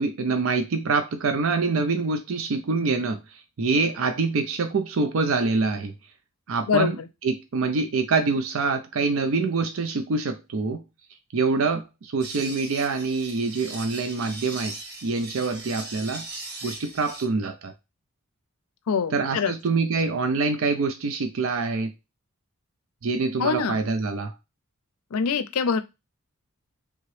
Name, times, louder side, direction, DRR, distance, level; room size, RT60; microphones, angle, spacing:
voice 1, 0.0-5.9 6.5-10.8 11.3-14.7 15.0-16.3 16.6-17.7 19.1-21.9 23.0-24.3, right 4 dB, 65° right, 0.4 m, -25 dB
sound 1, 12.2-17.3, right 2 dB, 45° right, 0.8 m, -39 dB
voice 2, 18.9-19.5 23.4-23.8 25.1-25.8, left 6 dB, 85° left, 0.5 m, -24 dB
3.6 x 2.9 x 3.1 m
head